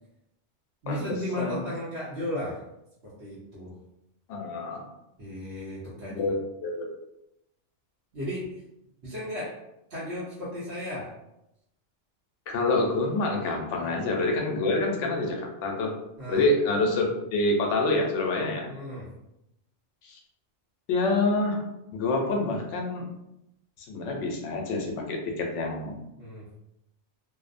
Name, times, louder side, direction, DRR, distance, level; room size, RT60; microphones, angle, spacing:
voice 1, 0.8-2.6 3.0-3.8 5.2-6.3 8.1-8.6 9.0-9.5 9.9-11.1 13.8-13.9 16.2-16.4 18.7-19.1 26.2-26.5, left 1 dB, 60° right, -10 dB, 1.0 m, -35 dB
voice 2, 4.3-4.8 6.1-6.9 12.5-15.9 16.3-18.7 20.0-20.1 20.9-21.6 21.9-23.1 23.9-26.0, left 2 dB, 80° left, 1 dB, 0.9 m, -27 dB
2.6 x 2.0 x 2.4 m, 0.85 s
omnidirectional pair, 1.2 m